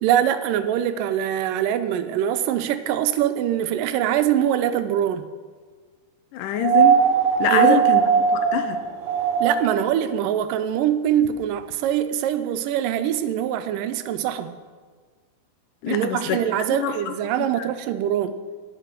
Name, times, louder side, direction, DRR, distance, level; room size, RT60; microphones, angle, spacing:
voice 1, 0.0-5.3 7.5-7.8 9.4-14.6 15.9-18.4, right 10 dB, 85° right, 2.3 m, -23 dB
voice 2, 6.3-7.1 7.4-8.1 8.3-8.8 15.8-16.4 16.8-17.7, left 10 dB, 85° left, 2.4 m, -25 dB
sound 1, 6.6-9.8 11.2-11.3, right 8 dB, 65° right, 2.0 m, -19 dB
18.0 x 6.9 x 6.0 m
omnidirectional pair, 3.7 m